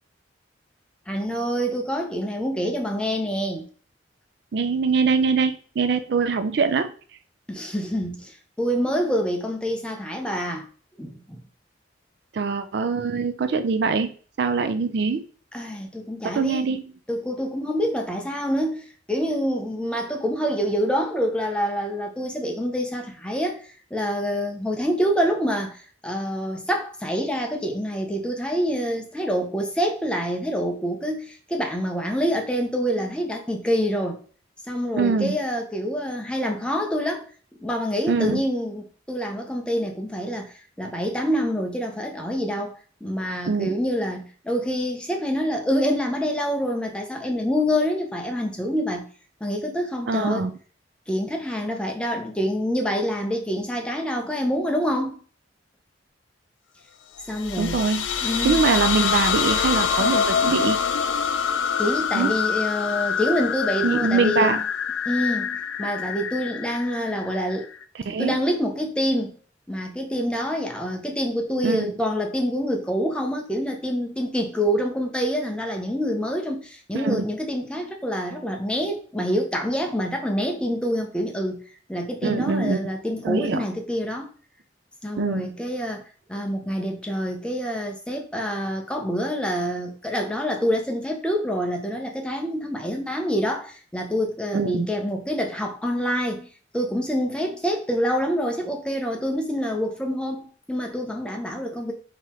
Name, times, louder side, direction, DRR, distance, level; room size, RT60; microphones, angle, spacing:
voice 1, 1.1-3.6 7.5-10.7 11.0-11.4 15.5-16.8 17.1-34.2 34.7-37.3 37.6-49.1 49.4-50.5 51.1-55.2 57.3-57.8 58.2-58.6 61.8-64.6 65.1-67.7 68.1-69.3 69.7-81.6 81.9-84.3 85.0-96.5 96.7-101.9, equal, 5° left, 0.7 m, -26 dB
voice 2, 4.5-6.9 12.3-14.1 14.4-15.2 16.2-16.8 35.0-35.4 38.1-38.4 43.5-43.7 50.1-50.5 57.6-58.0 58.4-60.8 62.1-62.3 63.8-64.6 68.1-68.4 71.6-71.9 76.9-77.2 82.2-82.8 83.2-83.6 85.2-85.5 94.5-94.9, right 4 dB, 60° right, 0.4 m, -23 dB
sound 1, 57.2-67.8, left 7 dB, 85° left, 0.4 m, -25 dB
3.8 x 3.0 x 4.3 m
head